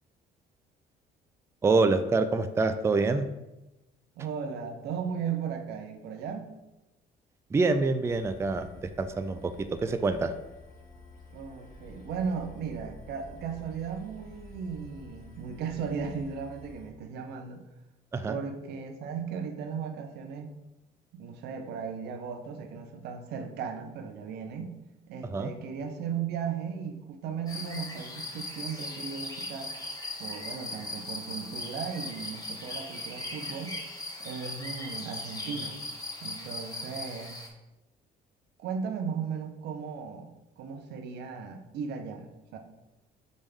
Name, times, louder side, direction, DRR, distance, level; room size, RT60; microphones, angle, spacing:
voice 1, 1.6-3.3 7.5-10.3 18.1-18.4 25.2-25.5, right 3 dB, 15° right, 9 dB, 0.4 m, -26 dB
voice 2, 4.2-6.5 11.3-17.6 18.3-20.5 21.1-24.8 25.1-29.7 30.2-33.8 34.2-35.8 36.2-37.3 38.6-42.6, right 6 dB, 80° right, 5 dB, 0.9 m, -36 dB
sound 1, 8.0-16.9, left 2 dB, 50° left, 1.7 m, -50 dB
sound 2, 27.5-37.5, left 2 dB, 25° left, 1.3 m, -39 dB
5.3 x 3.5 x 5.4 m, 0.99 s
cardioid pair, 110°, 17 cm